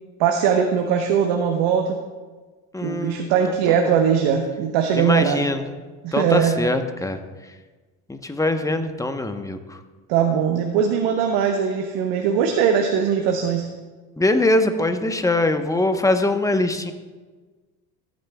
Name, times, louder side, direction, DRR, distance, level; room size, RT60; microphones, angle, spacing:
voice 1, 0.2-2.0 2.8-5.4 6.0-6.5 10.1-13.7, right 7 dB, 70° right, 4 dB, 1.1 m, -20 dB
voice 2, 2.7-4.0 4.9-5.7 6.1-7.2 8.1-9.8 14.2-16.9, left 2 dB, 5° left, 7 dB, 1.0 m, -23 dB
16.5 x 9.3 x 2.3 m, 1.3 s
hypercardioid pair, 75°, 44 cm